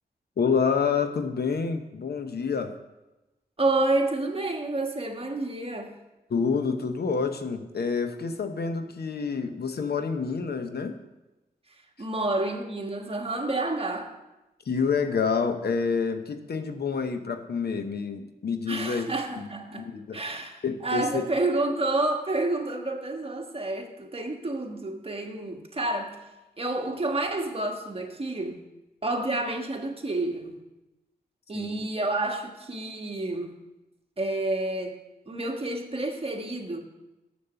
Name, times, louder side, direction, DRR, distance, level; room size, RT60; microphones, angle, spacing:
voice 1, 0.4-2.7 6.3-11.0 14.7-19.1 19.4-19.5 19.7-20.2 20.6-21.2 31.5-31.9, left 5 dB, 75° left, 8 dB, 0.8 m, -28 dB
voice 2, 3.6-5.9 12.0-14.1 18.7-19.9 20.1-26.2 26.6-28.6 29.0-30.6 31.5-33.5 34.2-35.0 35.3-36.8, right 2 dB, 35° right, 2 dB, 1.4 m, -29 dB
7.2 x 6.9 x 6.8 m, 1.0 s
cardioid pair, 65°, 17 cm